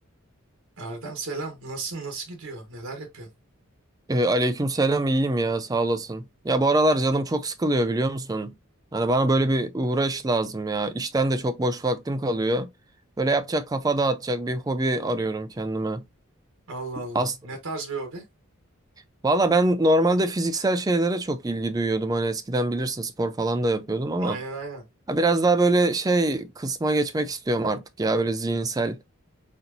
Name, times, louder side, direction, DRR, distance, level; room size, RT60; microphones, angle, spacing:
voice 1, 0.8-3.3 16.7-18.2 24.2-24.8, right 3 dB, 80° right, 1.2 m, -35 dB
voice 2, 4.1-8.5 8.9-12.7 13.2-16.0 17.1-17.3 19.2-24.4 25.1-29.1, right 2 dB, 15° right, 0.4 m, -24 dB
4.3 x 3.9 x 2.6 m
head